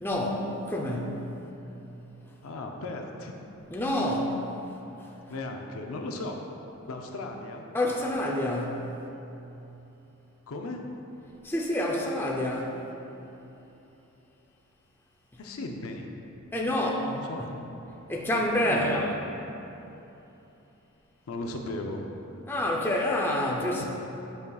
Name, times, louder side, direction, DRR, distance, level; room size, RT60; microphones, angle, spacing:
voice 1, 0.0-1.3 3.7-4.4 5.0-5.1 7.7-8.9 11.4-12.8 16.5-17.1 17.4-17.5 18.1-19.1 22.5-23.9, left 1 dB, 10° left, -2 dB, 0.5 m, -28 dB
voice 2, 2.4-3.3 5.3-6.5 6.9-7.7 10.5-10.8 15.4-16.1 16.7-16.8 17.1-17.5 18.6-19.1 21.3-22.0 23.8-23.9, left 2 dB, 70° left, 2 dB, 0.5 m, -36 dB
9.3 x 5.3 x 2.3 m, 3.0 s
head